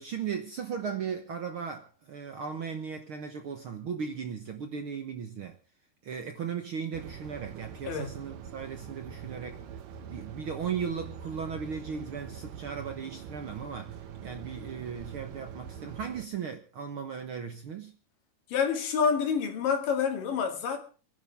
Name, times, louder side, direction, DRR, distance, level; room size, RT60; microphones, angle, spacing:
voice 1, 0.0-5.6 6.0-9.6 10.0-13.9 14.2-18.0, right 6 dB, 60° right, 1.5 m, -37 dB
Supermarket Fridge motor, 6.9-16.2, right 8 dB, 85° right, 3.1 m, -44 dB
voice 2, 18.5-20.8, left 6 dB, 80° left, 3.9 m, -27 dB
29.0 x 11.0 x 3.5 m
omnidirectional pair, 3.8 m